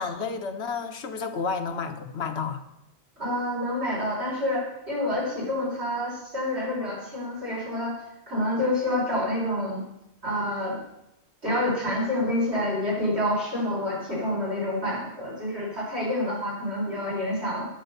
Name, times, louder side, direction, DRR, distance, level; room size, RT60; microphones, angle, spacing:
voice 1, 0.0-2.6, left 5 dB, 70° left, 6 dB, 1.3 m, -31 dB
voice 2, 3.2-8.0 8.3-9.8 10.2-10.8 11.4-17.7, left 1 dB, 65° right, -5 dB, 5.4 m, -28 dB
9.9 x 9.2 x 6.6 m, 0.83 s
omnidirectional pair, 1.2 m